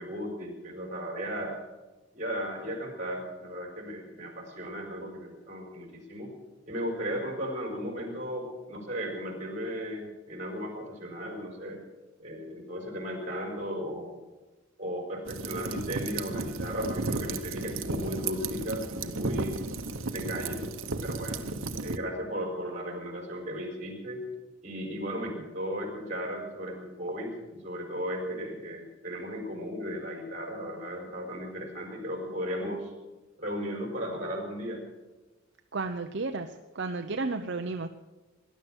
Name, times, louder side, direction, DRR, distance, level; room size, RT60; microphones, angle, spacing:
voice 1, 0.0-1.6 2.1-6.3 6.7-11.8 12.2-14.2 14.8-19.6 20.1-20.6 21.0-21.4 21.8-24.2 24.6-32.9 33.4-34.8, equal, 35° right, 2 dB, 4.7 m, -36 dB
sound 1, 15.3-22.0, right 3 dB, 85° right, 1.0 m, -34 dB
voice 2, 35.7-37.9, right 3 dB, 60° right, 6 dB, 0.7 m, -33 dB
19.0 x 11.5 x 6.3 m, 1.2 s
head